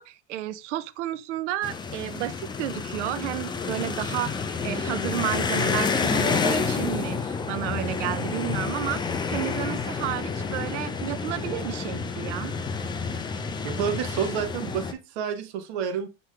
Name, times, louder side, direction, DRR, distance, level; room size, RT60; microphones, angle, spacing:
voice 1, 0.0-9.0 9.3-12.5, right 13 dB, 80° right, 0.5 m, -32 dB
sound 1, 1.6-14.9, left 5 dB, 15° left, 0.4 m, -29 dB
voice 2, 13.6-16.1, right 8 dB, 65° right, 0.9 m, -29 dB
7.3 x 3.0 x 2.4 m
hypercardioid pair, 100°, 36 cm